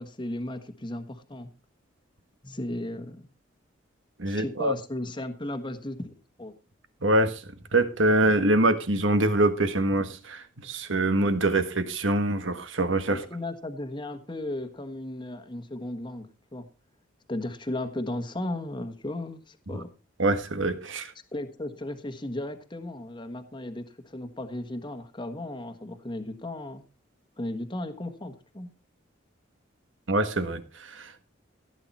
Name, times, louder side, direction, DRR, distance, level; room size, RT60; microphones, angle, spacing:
voice 1, 0.0-1.5 2.4-3.3 4.3-6.5 13.1-16.7 17.3-19.9 21.3-26.8 27.4-28.7, left 1 dB, 25° left, 8 dB, 1.3 m, -35 dB
voice 2, 4.2-4.7 7.0-7.4 7.7-13.2 20.2-21.1 30.1-31.2, right 2 dB, 75° right, 10 dB, 1.6 m, -24 dB
16.0 x 8.9 x 4.3 m, 0.32 s
head